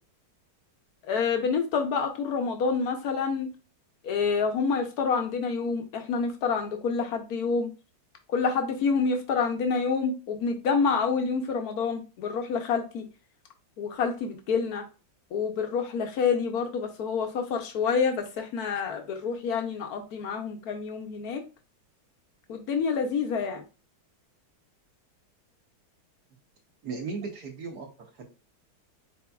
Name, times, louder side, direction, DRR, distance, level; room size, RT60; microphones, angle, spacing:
voice 1, 1.0-3.5 4.0-7.7 8.3-13.0 13.8-14.8 15.3-21.4 22.5-23.6, left 5 dB, 65° left, 5 dB, 0.9 m, -28 dB
voice 2, 26.8-28.2, right 4 dB, 60° right, 2 dB, 1.1 m, -36 dB
4.4 x 4.2 x 2.3 m, 0.31 s
omnidirectional pair, 2.3 m